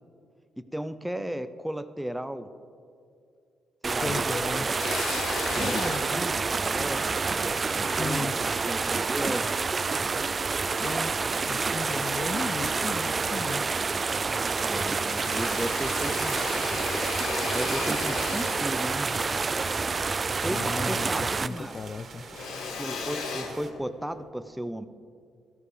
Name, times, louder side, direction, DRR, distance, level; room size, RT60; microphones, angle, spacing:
voice 1, 0.7-2.5 3.8-5.2 5.5-7.2 8.0-9.5 14.7-16.6 17.5-19.1 20.4-21.7 22.8-24.9, right 1 dB, 5° right, 11 dB, 0.7 m, -35 dB
sound 1, 3.8-21.5, right 4 dB, 40° right, 0.4 m, -28 dB
voice 2, 4.0-4.7 5.5-6.2 8.0-8.4 10.8-11.2 11.5-13.6 20.5-22.2, left 4 dB, 40° left, 12 dB, 0.4 m, -35 dB
Drill, 4.8-9.3 9.9-11.1 11.5-12.5 12.8-12.9 13.2-14.2 14.4-21.1 21.4-24.3, left 5 dB, 75° left, 1.0 m, -37 dB
sound 2, 6.8-23.7, right 4 dB, 60° right, 2.0 m, -46 dB
16.5 x 13.5 x 3.4 m, 2.4 s
supercardioid pair, 60°, 0 cm